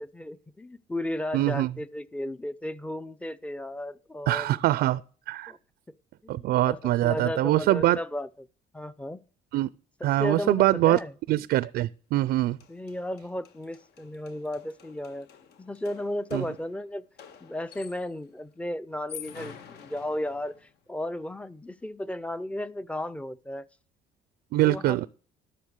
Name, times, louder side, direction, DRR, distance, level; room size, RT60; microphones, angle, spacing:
voice 1, 0.0-4.5 5.5-5.6 6.2-8.5 8.7-9.2 10.0-11.1 12.7-15.3 15.6-17.0 17.4-20.5 20.9-23.7 24.6-25.1, left 1 dB, 5° left, 0.5 m, -34 dB
voice 2, 1.3-1.7 4.3-5.0 5.3-5.5 6.3-8.0 9.5-9.7 10.0-11.0 11.3-12.6 16.3-16.4 24.5-25.1, right 15 dB, 70° right, 0.4 m, -23 dB
sound 1, 12.3-12.4 12.6-18.2 18.9-20.7, left 9 dB, 75° left, 1.7 m, -49 dB
12.0 x 7.0 x 6.5 m
cardioid pair, 110°, 17 cm